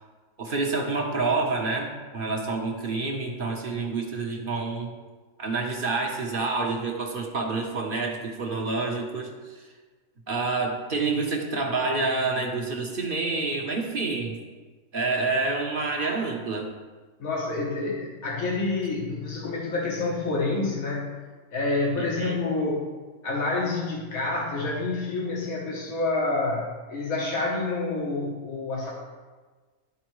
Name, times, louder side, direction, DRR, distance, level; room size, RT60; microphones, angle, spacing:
voice 1, 0.4-4.9 5.4-9.6 10.3-14.4 14.9-16.7 22.0-22.4, right 3 dB, 45° right, 1 dB, 0.9 m, -28 dB
voice 2, 17.2-21.1 21.5-22.9 23.2-28.9, left 3 dB, 90° left, -3 dB, 1.6 m, -28 dB
13.0 x 4.3 x 3.1 m, 1.4 s
omnidirectional pair, 1.4 m